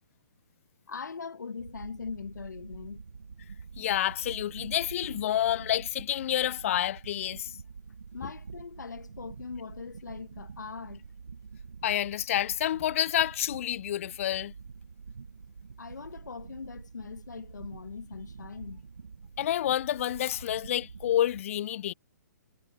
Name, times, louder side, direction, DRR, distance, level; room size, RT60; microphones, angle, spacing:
voice 1, 0.9-3.0 8.1-11.0 15.8-18.8, left 5 dB, 70° left, 1.8 m, -41 dB
sound 1, 1.6-21.4, right 5 dB, 70° right, 2.2 m, -46 dB
voice 2, 3.8-7.6 11.8-14.5 19.4-21.9, left 12 dB, 45° left, 0.7 m, -29 dB
figure-of-eight pair, 130°, 10 cm